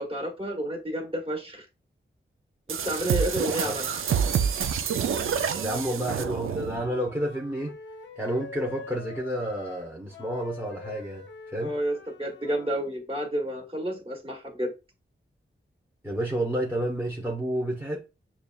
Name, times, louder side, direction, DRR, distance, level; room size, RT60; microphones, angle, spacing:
voice 1, 0.0-1.6 2.7-4.0 11.6-14.7, right 1 dB, 25° right, 1.4 m, -30 dB
sound 1, 2.7-6.9, right 7 dB, 80° right, 0.4 m, -27 dB
voice 2, 5.5-7.8 8.2-11.2 11.5-11.7 16.0-18.1, right 1 dB, 10° right, 0.8 m, -30 dB
Wind instrument woodwind instrument, 6.7-12.9, left 4 dB, 60° left, 0.6 m, -45 dB
6.7 x 2.4 x 2.3 m
wide cardioid pair, 80°, 21 cm